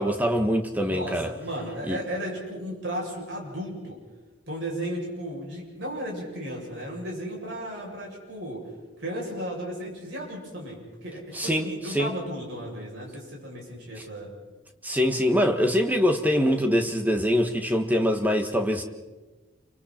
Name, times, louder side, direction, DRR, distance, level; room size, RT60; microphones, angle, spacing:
voice 1, 0.0-1.3 1.9-2.0 11.3-12.1 14.8-18.8, equal, 10° right, 5 dB, 1.4 m, -24 dB
voice 2, 0.9-4.0 4.5-8.7 9.0-14.3, equal, 55° right, -2 dB, 7.6 m, -35 dB
29.5 x 25.0 x 4.4 m, 1.2 s
head